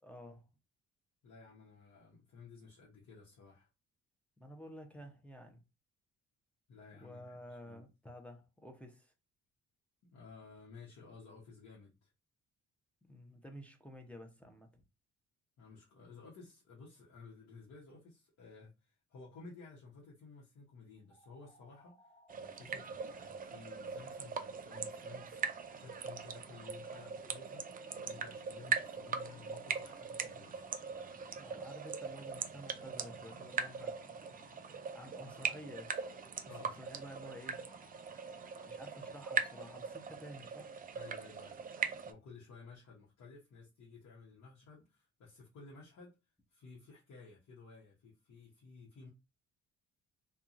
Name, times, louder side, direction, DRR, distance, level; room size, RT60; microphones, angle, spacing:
voice 1, 0.0-0.5 4.4-5.6 7.0-9.1 13.1-14.7 31.3-34.0 34.9-36.0 36.6-37.6 38.6-40.7, equal, 5° left, 0.7 m, -51 dB
voice 2, 1.2-3.7 6.7-7.9 10.0-12.1 15.6-27.6 28.0-30.7 36.4-36.8 40.9-46.1 46.5-49.1, left 4 dB, 60° left, 1.0 m, -55 dB
sound 1, 21.1-40.4, left 2 dB, 30° left, 1.3 m, -63 dB
sound 2, 22.3-42.1, right 6 dB, 30° right, 0.4 m, -41 dB
2.6 x 2.3 x 2.5 m
cardioid pair, 90°, 30 cm